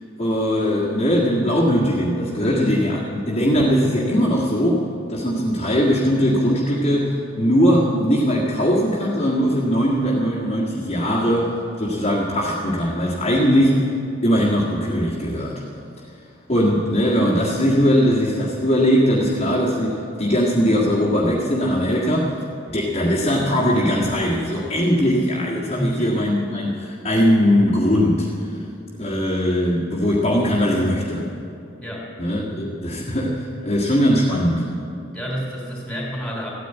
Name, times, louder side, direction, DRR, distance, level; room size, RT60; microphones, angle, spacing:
voice 1, 0.2-13.9 14.2-15.6 16.5-22.3 22.7-28.5 29.0-31.3 32.2-34.7, equal, 30° left, -6 dB, 1.7 m, -20 dB
voice 2, 2.4-2.8 25.7-26.2 31.8-32.0 32.5-32.7 35.1-36.5, equal, 5° left, -2 dB, 3.3 m, -29 dB
14.5 x 9.3 x 9.1 m, 2.6 s
head